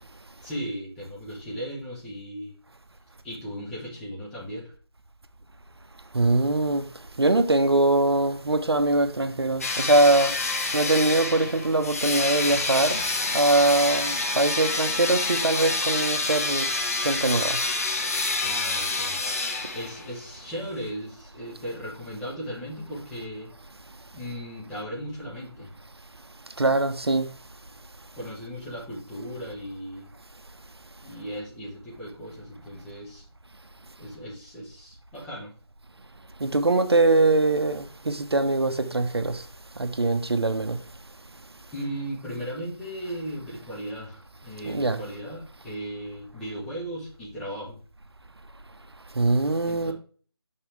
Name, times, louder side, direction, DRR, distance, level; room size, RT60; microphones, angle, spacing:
voice 1, 0.4-2.5 3.2-4.7 18.4-19.2 19.7-23.5 24.1-25.7 28.1-30.1 31.0-33.2 34.0-35.5 41.7-47.8 49.6-49.9, equal, 5° left, 0.9 m, -37 dB
voice 2, 6.1-6.8 7.2-10.3 10.7-13.0 13.3-16.7 17.0-17.6 26.6-27.3 36.4-39.4 39.8-40.8 44.6-45.0 49.1-49.9, right 2 dB, 70° right, 0.9 m, -22 dB
sound 1, 9.6-20.2, left 3 dB, 35° left, 0.8 m, -27 dB
6.3 x 5.7 x 3.3 m
figure-of-eight pair, 160°, 14 cm